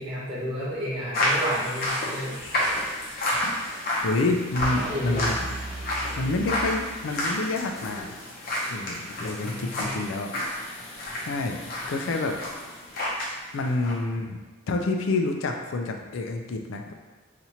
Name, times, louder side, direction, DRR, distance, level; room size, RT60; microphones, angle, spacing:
voice 1, 0.0-2.4 4.7-5.4 9.4-9.9, equal, 25° right, -9 dB, 1.1 m, -31 dB
sound 1, 1.1-13.3 13.6-13.9, left 1 dB, 50° left, 0.7 m, -30 dB
voice 2, 4.0-5.4 6.2-8.1 8.7-10.3 11.3-11.6 11.9-12.4 13.5-14.4 14.7-16.9, left 2 dB, 80° left, 4 dB, 0.4 m, -28 dB
sound 2, 4.6-7.5, right 1 dB, 15° left, 1.2 m, -37 dB
2.8 x 2.5 x 4.2 m, 1.2 s
head